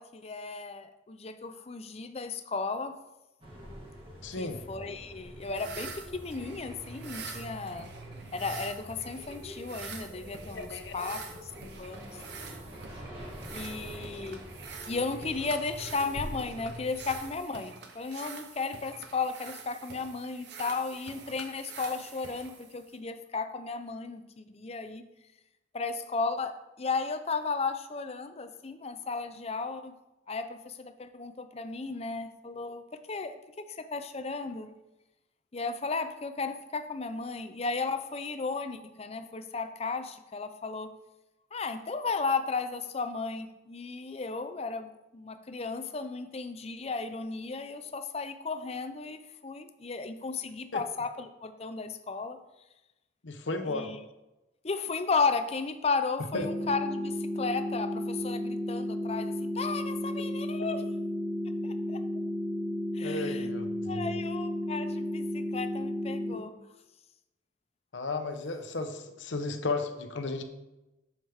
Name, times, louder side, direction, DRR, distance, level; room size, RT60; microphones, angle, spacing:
voice 1, 0.0-3.0 4.4-7.9 8.3-12.2 13.5-14.5 14.9-25.0 25.7-29.9 30.3-32.8 33.1-34.7 35.5-40.9 41.5-52.4 53.7-54.0 54.6-60.8 61.6-62.0 62.9-63.5 63.9-66.6, left 4 dB, 35° left, 9 dB, 0.5 m, -34 dB
sound 1, 3.4-17.3, equal, 30° right, 1.9 m, -45 dB
voice 2, 4.2-4.6 10.5-10.9 50.7-50.8 53.2-53.9 56.3-56.5 63.0-64.2 67.9-70.4, left 3 dB, 75° left, 7 dB, 0.9 m, -34 dB
sound 2, 5.4-23.0, right 5 dB, 60° right, 0.9 m, -46 dB
sound 3, 56.3-66.3, left 1 dB, 90° right, 1.1 m, -33 dB
7.6 x 7.2 x 3.5 m, 0.98 s
head